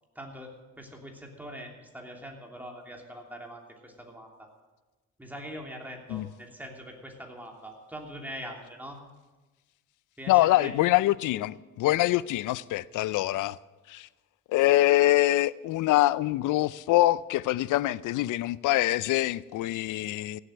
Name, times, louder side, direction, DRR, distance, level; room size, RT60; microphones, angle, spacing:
voice 1, 0.1-0.5 0.8-4.5 5.2-9.0 10.2-10.9, equal, 5° right, 3.1 m, -42 dB
voice 2, 10.3-13.6 13.9-14.1 14.5-20.4, left 16 dB, 85° left, 0.5 m, -24 dB
16.0 x 8.0 x 7.9 m
cardioid pair, 90°, 30 cm